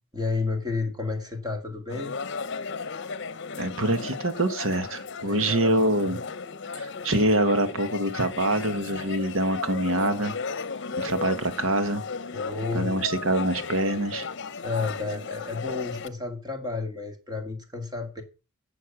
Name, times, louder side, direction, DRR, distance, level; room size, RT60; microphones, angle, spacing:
voice 1, 0.1-2.1 5.3-5.8 12.3-12.9 14.6-18.2, left 4 dB, 20° right, 2.1 m, -31 dB
sound 1, 1.9-16.1, left 4 dB, 60° left, 0.8 m, -35 dB
voice 2, 3.6-6.2 6.7-10.3 11.0-12.0 12.7-14.3, right 1 dB, 70° right, 1.5 m, -25 dB
11.5 x 7.0 x 6.0 m
head